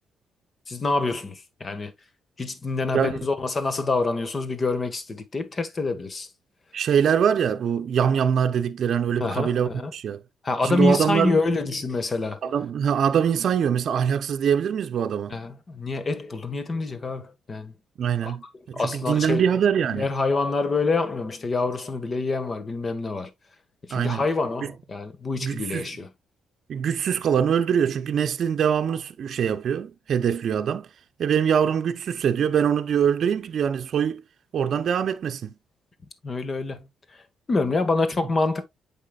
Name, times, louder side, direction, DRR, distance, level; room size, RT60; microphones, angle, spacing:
voice 1, 0.7-1.9 2.4-6.3 9.2-9.9 10.4-12.4 15.3-17.7 18.2-18.4 18.7-19.5 19.9-23.3 23.8-26.1 36.2-36.9 37.5-38.6, left 3 dB, 35° left, 1.6 m, -26 dB
voice 2, 6.7-10.2 10.6-11.3 12.4-15.3 18.0-20.1 23.9-24.2 24.6-24.7 25.4-25.9 26.7-30.9 31.2-34.2 34.5-35.5, right 8 dB, 60° right, 0.7 m, -23 dB
8.4 x 5.6 x 2.4 m
cardioid pair, 90°, 0 cm